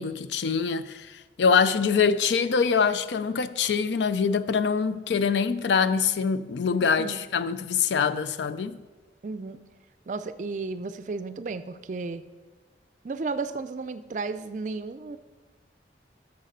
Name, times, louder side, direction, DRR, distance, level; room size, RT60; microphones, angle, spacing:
voice 1, 0.0-8.8, left 6 dB, 85° left, 0.4 m, -24 dB
voice 2, 9.2-9.6 10.1-12.2 13.0-15.2, right 4 dB, 45° right, 0.4 m, -33 dB
6.8 x 6.5 x 6.6 m
head